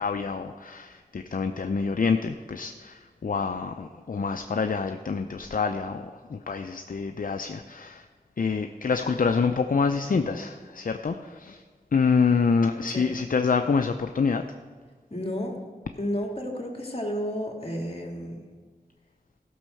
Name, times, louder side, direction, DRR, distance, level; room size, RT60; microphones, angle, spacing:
voice 1, 0.0-8.1 8.4-11.6 11.9-14.4, left 5 dB, 60° left, 7 dB, 0.5 m, -26 dB
voice 2, 15.1-15.6 16.0-18.4, equal, 35° left, 0 dB, 2.2 m, -32 dB
14.0 x 5.5 x 6.4 m, 1.5 s
wide cardioid pair, 45°, 16 cm